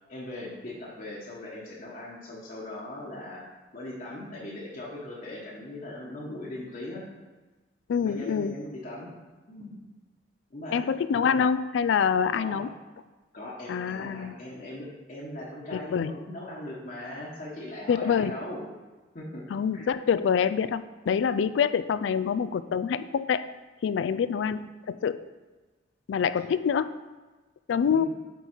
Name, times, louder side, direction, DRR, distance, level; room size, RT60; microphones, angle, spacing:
voice 1, 0.1-7.0 8.0-9.1 9.5-9.8 10.5-10.9 12.3-12.6 13.3-18.7 19.1-19.9 27.7-28.1, left 1 dB, 45° left, -5 dB, 1.2 m, -40 dB
voice 2, 7.9-8.5 10.7-12.7 13.7-14.3 15.7-16.1 17.9-18.4 19.5-23.4 23.8-25.2 26.1-26.9 27.7-28.1, left 7 dB, 80° left, 14 dB, 0.3 m, -26 dB
8.2 x 3.9 x 4.5 m, 1.2 s
head